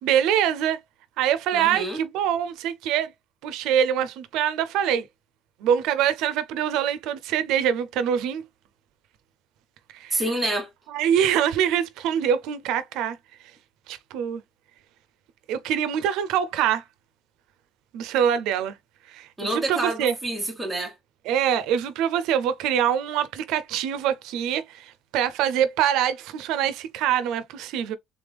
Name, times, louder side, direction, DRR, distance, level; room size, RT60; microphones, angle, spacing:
voice 1, 0.0-0.8 1.2-3.1 3.4-5.0 5.6-8.4 9.9-10.2 10.9-13.2 13.9-14.4 15.5-16.8 17.9-18.8 19.1-19.3 19.5-20.1 21.3-28.0, right 9 dB, 85° right, 0.5 m, -24 dB
voice 2, 1.5-2.0 10.1-10.7 19.4-20.9, right 1 dB, 5° right, 1.2 m, -28 dB
3.6 x 3.3 x 3.4 m
cardioid pair, 165°, 0 cm